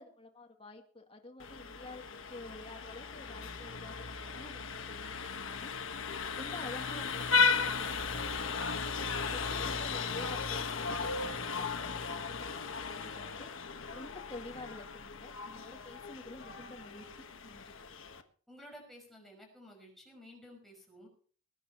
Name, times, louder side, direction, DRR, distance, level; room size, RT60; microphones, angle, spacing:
voice 1, 0.0-5.7 6.3-8.9 9.3-12.5 12.9-13.5 13.9-17.8, left 2 dB, 25° left, 2 dB, 2.1 m, -49 dB
Vehicle horn car horn honking, 1.4-18.2, left 5 dB, 65° left, 1.3 m, -36 dB
voice 2, 6.5-7.0 18.5-21.1, equal, ahead, -1 dB, 5.9 m, -54 dB
21.0 x 10.0 x 4.4 m, 0.43 s
head